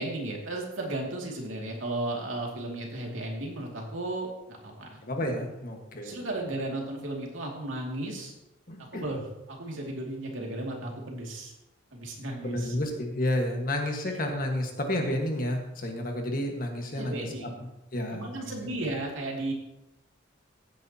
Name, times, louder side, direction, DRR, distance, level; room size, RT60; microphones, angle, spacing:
voice 1, 0.0-5.0 6.0-8.3 8.8-11.5 11.9-12.7 14.1-14.2 16.9-17.6 18.1-19.5, right 2 dB, 80° right, 0 dB, 2.5 m, -35 dB
voice 2, 5.0-6.2 8.7-9.0 12.4-17.5 17.9-18.8, left 1 dB, 45° left, 2 dB, 1.6 m, -31 dB
15.0 x 9.0 x 2.9 m, 0.90 s
head